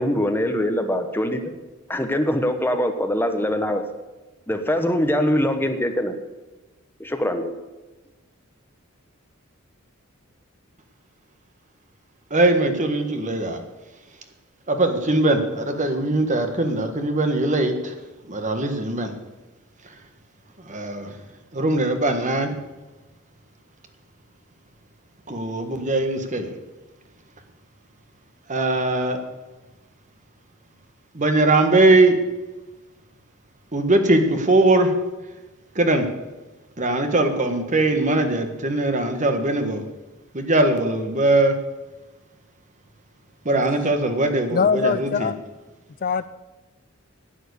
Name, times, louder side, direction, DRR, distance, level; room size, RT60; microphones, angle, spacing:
voice 1, 0.0-1.4 1.9-3.8 4.5-6.1 7.0-7.5, equal, 10° left, 6 dB, 1.1 m, -23 dB
voice 2, 12.3-13.6 14.7-17.9 18.3-19.1 20.6-21.2 21.5-22.5 25.3-26.5 28.5-29.2 31.1-32.2 33.7-34.9 35.7-36.1 36.8-39.8 40.3-41.5 43.4-45.3, right 2 dB, 35° right, 6 dB, 1.5 m, -20 dB
voice 3, 44.5-45.3 46.0-46.3, left 5 dB, 40° left, 15 dB, 0.4 m, -22 dB
11.5 x 9.2 x 8.3 m, 1.1 s
head